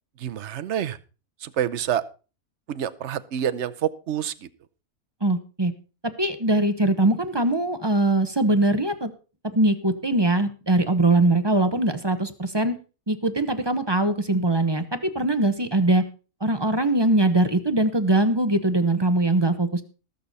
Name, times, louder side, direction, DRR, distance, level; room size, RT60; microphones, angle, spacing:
voice 1, 0.2-1.0 1.4-2.0 2.7-4.5, right 10 dB, 55° right, 12 dB, 1.0 m, -27 dB
voice 2, 5.2-5.7 6.2-9.1 9.4-12.7 13.1-16.0 16.4-19.8, right 2 dB, 20° right, 10 dB, 0.8 m, -22 dB
20.0 x 6.9 x 4.1 m, 0.34 s
omnidirectional pair, 1.6 m